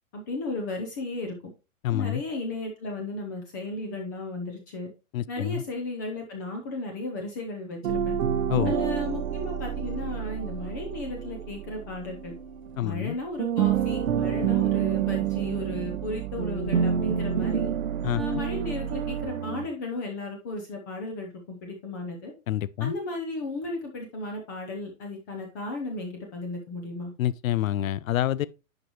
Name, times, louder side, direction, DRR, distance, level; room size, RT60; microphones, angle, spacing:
voice 1, 0.1-1.5 1.9-4.9 5.3-8.1 8.6-12.4 12.8-17.7 18.1-22.3 22.8-27.1, left 2 dB, 15° left, 0.7 m, -35 dB
voice 2, 1.8-2.2 5.1-5.6 8.5-8.7 12.8-13.2 18.0-18.4 22.5-22.9 27.2-28.5, left 13 dB, 75° left, 0.6 m, -27 dB
sound 1, 7.8-13.1 13.4-19.7, right 9 dB, 80° right, 1.0 m, -28 dB
10.5 x 5.2 x 3.0 m
hypercardioid pair, 170°, 41 cm